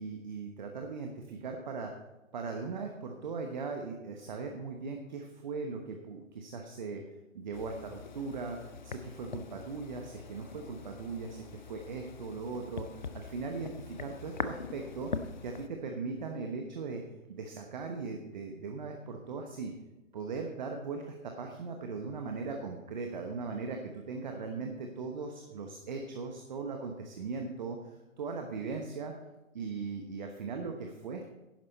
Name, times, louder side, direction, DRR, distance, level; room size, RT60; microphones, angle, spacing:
voice 1, 0.0-1.9 2.3-7.0 7.3-15.1 15.4-17.0 17.3-19.7 20.1-29.1 29.5-31.3, right 4 dB, 35° right, 3 dB, 1.1 m, -39 dB
sound 1, 7.5-15.7, left 5 dB, 35° left, 0.5 m, -43 dB
11.0 x 10.5 x 4.1 m, 1.1 s
figure-of-eight pair, 130°, 41 cm